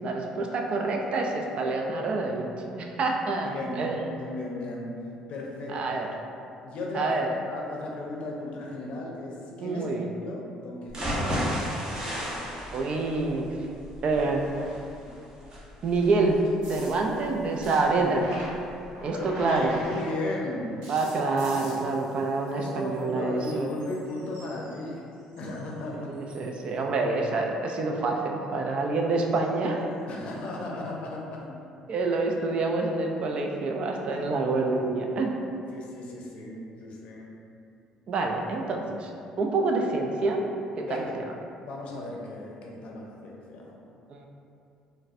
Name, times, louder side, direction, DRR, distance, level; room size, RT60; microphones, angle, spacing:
voice 1, 0.0-4.0 5.7-6.1 6.9-7.3 9.6-10.1 12.7-13.5 14.0-14.4 15.8-16.4 16.7-18.3 19.0-19.7 20.9-23.7 26.1-29.9 31.9-35.3 38.1-39.1 39.4-40.5 40.8-41.0 44.1-44.3, right 3 dB, 50° right, 1 dB, 0.4 m, -27 dB
voice 2, 3.4-6.1 6.6-9.9 10.2-11.8 19.1-20.8 22.6-25.1 25.4-26.1 30.1-31.5 34.1-34.3 35.7-37.3 40.8-41.1 41.6-43.8, left 2 dB, 60° left, -2 dB, 0.6 m, -36 dB
sound 1, 10.9-18.9 19.3-19.4 19.7-19.8, equal, 35° right, 0.9 m, -34 dB
sound 2, 16.6-20.4 20.8-23.1 23.4-25.7 26.1-26.6 29.3-29.5 30.4-30.5, right 1 dB, 80° right, 0.7 m, -46 dB
4.0 x 2.1 x 2.5 m, 2.6 s
supercardioid pair, 75°, 2 cm